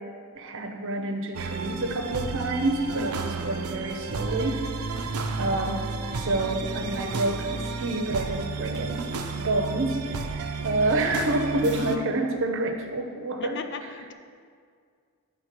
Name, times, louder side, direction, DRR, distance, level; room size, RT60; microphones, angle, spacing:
voice 1, 0.3-4.7 5.3-9.1 9.4-13.9, right 2 dB, 60° right, 4 dB, 0.8 m, -28 dB
sound 1, 1.3-12.0, right 4 dB, 90° right, 0.6 m, -32 dB
sound 2, 2.9-3.3 5.0-5.3 6.9-7.3 8.7-9.1 9.4-9.5 11.1-11.5, equal, 15° left, 1.2 m, -47 dB
voice 2, 5.1-5.6 11.7-12.0 13.4-14.1, left 5 dB, 50° left, 8 dB, 0.4 m, -38 dB
8.7 x 3.8 x 5.9 m, 2.1 s
head